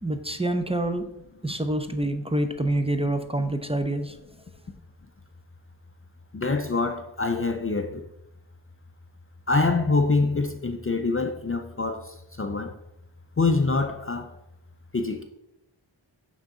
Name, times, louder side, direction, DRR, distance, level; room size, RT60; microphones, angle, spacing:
voice 1, 0.0-1.1 1.4-4.2, right 1 dB, 10° right, 0.7 m, -26 dB
voice 2, 6.3-8.0 9.5-12.7 13.4-14.3 14.9-15.2, left 3 dB, 30° left, 0.5 m, -25 dB
6.1 x 3.9 x 6.1 m
wide cardioid pair, 55°, 47 cm